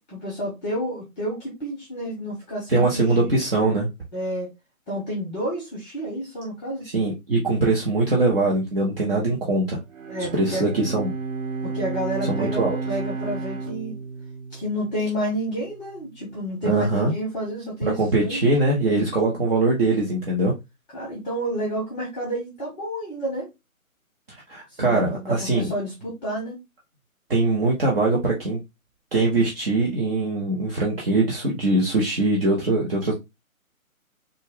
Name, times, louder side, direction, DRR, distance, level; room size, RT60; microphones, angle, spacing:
voice 1, 0.1-3.4 4.1-4.5 4.9-6.9 10.1-10.7 11.6-13.9 14.5-18.4 20.9-23.5 24.7-26.6, equal, 5° left, 1.0 m, -30 dB
voice 2, 2.7-3.9 6.8-9.8 10.3-11.1 12.3-12.8 16.6-17.1 17.8-20.5 24.5-25.7 27.3-28.6 29.1-33.1, right 2 dB, 40° right, 1.1 m, -22 dB
Bowed string instrument, 9.9-15.4, right 4 dB, 65° right, 1.3 m, -32 dB
4.0 x 2.4 x 3.5 m
hypercardioid pair, 155°, 42 cm